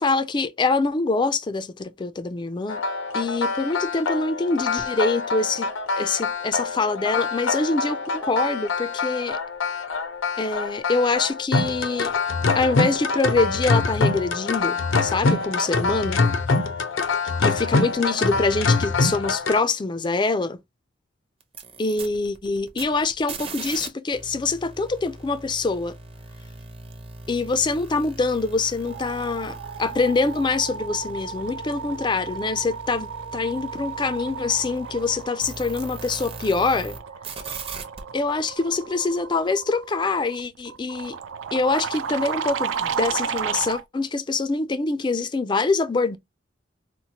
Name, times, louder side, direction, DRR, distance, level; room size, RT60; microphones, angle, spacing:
voice 1, 0.0-2.8 3.1-5.7 6.0-9.4 10.4-12.1 12.5-16.2 17.4-20.6 21.8-26.0 27.3-37.0 38.1-41.2 41.5-46.2, left 3 dB, 25° left, 0.3 m, -25 dB
sound 1, 2.7-19.6, left 3 dB, 85° left, 0.6 m, -25 dB
sound 2, 21.4-23.9 24.1-37.0 37.2-38.0, right 3 dB, 30° right, 0.6 m, -40 dB
sound 3, 28.0-28.3 28.6-43.8, right 6 dB, 80° right, 0.4 m, -33 dB
4.2 x 2.1 x 2.8 m
head